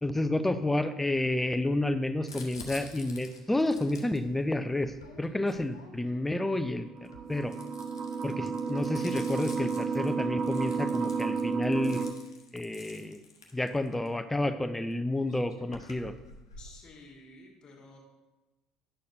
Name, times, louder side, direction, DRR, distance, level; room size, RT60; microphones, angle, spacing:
voice 1, 0.0-6.9 7.3-7.5 8.2-12.0 12.5-13.2 13.5-16.1, left 1 dB, 10° left, 10 dB, 0.5 m, -30 dB
Crumpling crinkling, 2.2-6.3 7.0-14.1 14.9-15.0 15.2-16.8, left 3 dB, 80° left, 0.7 m, -50 dB
sound 1, 6.8-12.1, right 5 dB, 35° right, 0.6 m, -32 dB
voice 2, 16.6-18.0, left 2 dB, 40° left, 1 dB, 1.5 m, -52 dB
10.0 x 6.5 x 2.7 m, 1.1 s
figure-of-eight pair, 60°, 2 cm